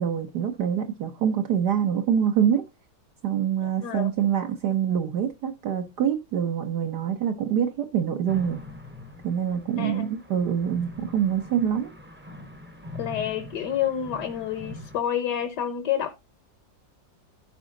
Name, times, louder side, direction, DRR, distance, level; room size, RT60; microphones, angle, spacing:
voice 1, 0.0-2.6 3.2-8.6 9.2-11.9, right 8 dB, 65° right, 1.5 m, -25 dB
sound 1, 8.3-15.0, left 2 dB, 10° right, 0.7 m, -43 dB
voice 2, 9.8-10.1 13.0-16.1, left 10 dB, 65° left, 1.5 m, -28 dB
14.5 x 4.9 x 3.8 m
omnidirectional pair, 2.0 m